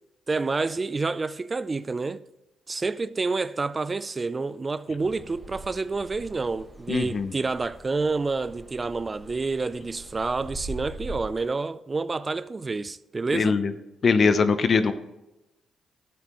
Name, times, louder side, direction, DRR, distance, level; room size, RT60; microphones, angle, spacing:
voice 1, 0.3-2.2 2.7-13.6, right 3 dB, 35° right, 0.5 m, -28 dB
sound 1, 5.0-11.3, right 1 dB, 10° right, 3.2 m, -42 dB
voice 2, 6.9-7.3 13.3-13.7 14.0-14.9, left 5 dB, 55° left, 0.9 m, -21 dB
12.5 x 8.8 x 3.1 m
supercardioid pair, 65°, 0 cm